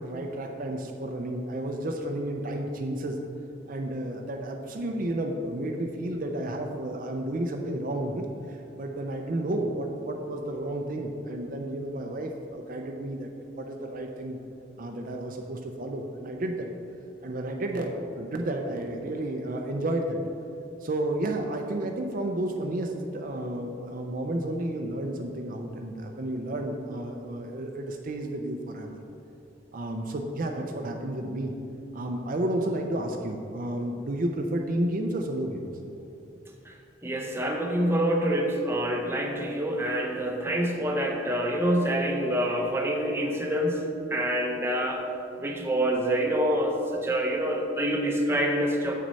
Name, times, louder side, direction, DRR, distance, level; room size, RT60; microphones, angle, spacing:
voice 1, 0.0-3.2 3.7-13.3 13.5-14.4 14.8-16.7 17.2-20.2 20.8-29.0 29.7-31.5 31.9-35.7, right 1 dB, 50° right, 3 dB, 0.5 m, -31 dB
voice 2, 37.0-43.8 44.1-45.1 45.4-49.0, right 1 dB, 15° right, 1 dB, 0.7 m, -26 dB
7.7 x 6.1 x 4.1 m, 2.6 s
head